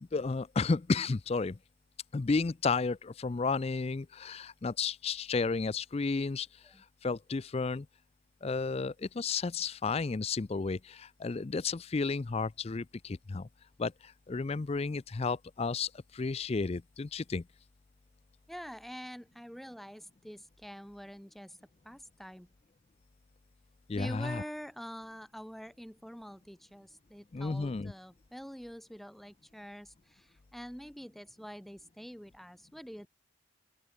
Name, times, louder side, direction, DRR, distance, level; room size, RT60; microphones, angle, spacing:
voice 1, 0.0-1.6 2.1-6.5 7.0-7.9 8.4-13.5 13.8-17.4 23.9-24.4 27.3-27.9, left 4 dB, 30° left, 0.4 m, -32 dB
voice 2, 18.5-21.6 21.8-22.5 23.9-33.1, equal, ahead, 2.2 m, -46 dB
open air
head